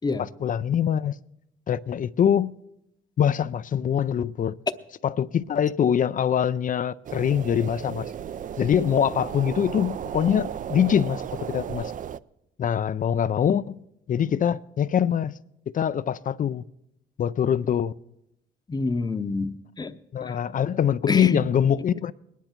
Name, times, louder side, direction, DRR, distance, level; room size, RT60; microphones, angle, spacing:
voice 1, 0.4-1.2 1.7-2.5 3.2-4.6 5.0-8.1 8.6-11.9 12.6-13.8 14.1-15.3 15.7-16.6 17.2-17.9 20.1-22.1, left 9 dB, 45° left, 0.4 m, -23 dB
sound 1, 7.0-12.2, right 9 dB, 40° right, 0.4 m, -34 dB
voice 2, 18.7-20.0 20.2-20.4 21.1-21.4, left 3 dB, 20° left, 0.7 m, -27 dB
21.0 x 10.0 x 4.4 m
cardioid pair, 90°, 20 cm